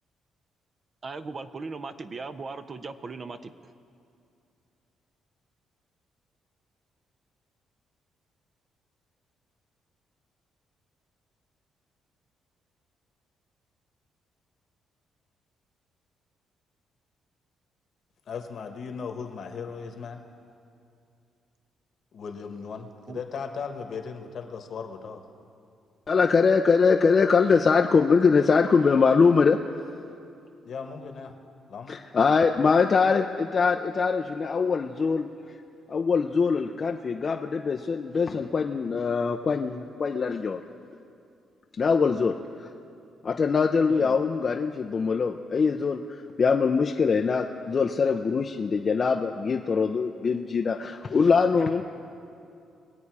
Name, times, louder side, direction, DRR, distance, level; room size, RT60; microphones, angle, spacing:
voice 1, 1.0-3.7 23.1-23.2 43.9-44.2, right 4 dB, 40° right, 10 dB, 0.6 m, -38 dB
voice 2, 18.3-20.2 22.1-25.3 30.6-31.4 31.7-31.9, left 5 dB, 60° left, 5 dB, 1.3 m, -37 dB
voice 3, 26.1-29.6 31.9-35.3 35.9-40.6 41.8-42.7 43.2-51.8, left 5 dB, 40° left, 3 dB, 0.5 m, -23 dB
23.0 x 8.5 x 4.8 m, 2.5 s
cardioid pair, 90°, 0 cm